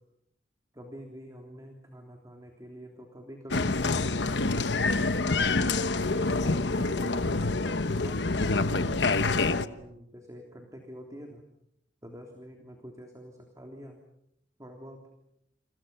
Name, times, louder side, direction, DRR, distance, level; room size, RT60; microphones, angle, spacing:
voice 1, 0.7-4.5 5.3-7.6 8.0-11.4 12.0-14.0 14.6-15.0, equal, 20° right, 2 dB, 3.5 m, -46 dB
Applause, 3.5-9.7, left 3 dB, 65° left, 1.1 m, -26 dB
30.0 x 28.0 x 5.9 m, 0.76 s
head